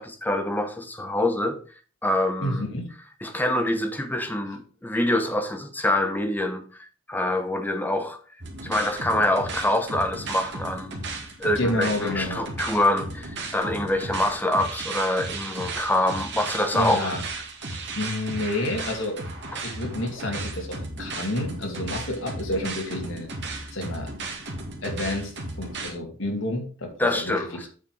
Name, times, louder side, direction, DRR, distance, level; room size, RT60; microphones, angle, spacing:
voice 1, 0.0-1.6 2.0-2.7 3.2-8.2 8.6-11.1 11.4-17.1 27.0-27.7, left 1 dB, 10° left, 1.0 m, -25 dB
voice 2, 2.4-2.9 11.6-12.4 16.7-17.2 17.7-19.2 19.6-23.3 23.7-24.1 24.8-27.7, left 1 dB, 75° left, 2.4 m, -29 dB
sound 1, 8.4-25.9, right 2 dB, 60° right, 2.0 m, -35 dB
8.5 x 5.0 x 4.8 m
head